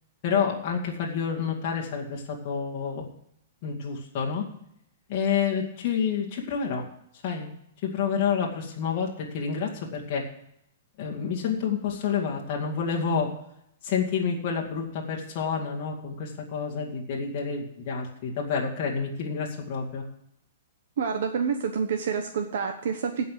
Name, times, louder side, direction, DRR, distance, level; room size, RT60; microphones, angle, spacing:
voice 1, 0.2-3.1 3.6-4.5 5.1-6.9 7.2-7.5 7.8-10.3 11.0-13.3 13.8-20.0, left 6 dB, 30° left, -2 dB, 2.1 m, -29 dB
voice 2, 21.0-23.3, right 6 dB, 55° right, 5 dB, 1.1 m, -28 dB
16.0 x 5.5 x 7.5 m, 0.75 s
hypercardioid pair, 180°, 0 cm